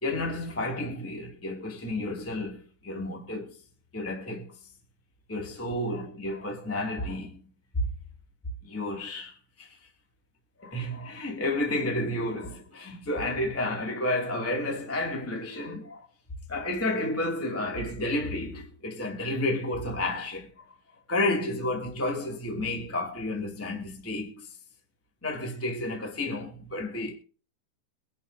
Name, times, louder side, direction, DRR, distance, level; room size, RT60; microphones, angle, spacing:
voice 1, 0.0-3.6 3.9-4.5 5.3-7.4 8.6-9.8 10.6-16.0 16.5-20.7 21.1-24.5 25.2-27.1, left 1 dB, 5° left, 1.0 m, -31 dB
23.5 x 11.0 x 2.7 m
omnidirectional pair, 4.9 m